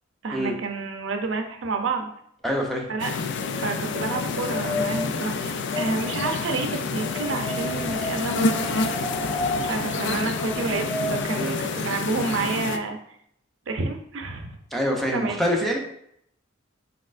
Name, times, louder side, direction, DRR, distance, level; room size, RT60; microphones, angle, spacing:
voice 1, 0.2-2.1 2.9-3.1 3.6-9.0 9.3-13.0 13.7-14.6 15.1-15.4, right 4 dB, 70° right, 4 dB, 0.6 m, -29 dB
voice 2, 2.4-2.9 11.4-11.6 14.7-15.8, equal, ahead, -1 dB, 0.6 m, -25 dB
Wind, 2.8-11.8, left 1 dB, 20° left, 1.1 m, -33 dB
sound 1, 3.0-12.8, left 4 dB, 65° left, 0.4 m, -28 dB
4.2 x 4.1 x 2.5 m, 0.71 s
head